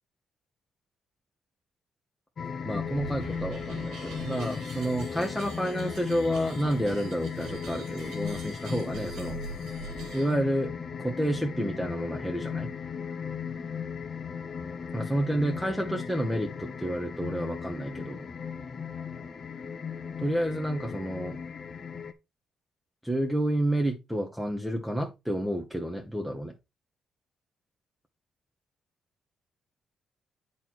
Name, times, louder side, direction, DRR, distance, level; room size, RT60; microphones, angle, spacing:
sound 1, 2.4-22.1, left 6 dB, 50° left, 1.2 m, -37 dB
voice 1, 2.6-9.4 10.1-10.7 11.0-12.7 14.9-18.2 20.2-21.4 23.0-26.5, right 1 dB, 5° right, 1.5 m, -30 dB
sound 2, 2.8-10.3, right 4 dB, 75° right, 2.4 m, -44 dB
9.1 x 4.3 x 4.4 m
cardioid pair, 90°, 0 cm